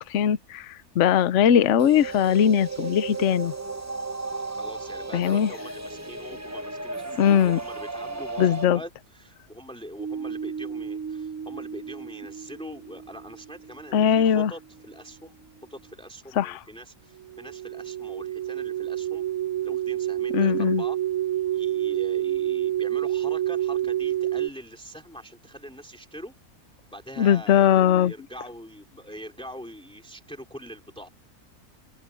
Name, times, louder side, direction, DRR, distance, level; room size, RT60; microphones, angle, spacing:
voice 1, 0.0-3.5 5.1-5.5 7.2-7.6 8.4-8.8 13.9-14.5 16.4-16.6 20.3-20.8 27.2-28.1, left 9 dB, 60° left, 1.0 m, -20 dB
sound 1, 1.8-8.6, right 3 dB, 15° right, 0.7 m, -34 dB
voice 2, 4.6-15.3 15.7-19.2 19.6-21.0 21.5-26.3 26.9-31.1, equal, 5° left, 3.1 m, -43 dB
sound 2, 10.0-14.2 17.2-24.5, right 12 dB, 60° right, 1.2 m, -29 dB
open air
omnidirectional pair, 1.5 m